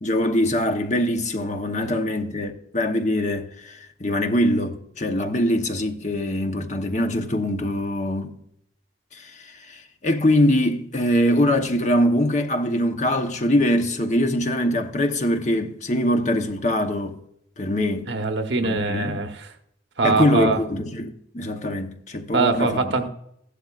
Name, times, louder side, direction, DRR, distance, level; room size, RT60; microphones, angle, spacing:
voice 1, 0.0-8.4 9.1-17.2 17.6-18.1 18.6-19.2 20.0-22.9, left 1 dB, 40° left, 1.0 m, -23 dB
voice 2, 18.1-19.3 20.0-20.6 22.3-23.1, right 3 dB, 75° right, 1.1 m, -22 dB
15.0 x 11.5 x 2.5 m
head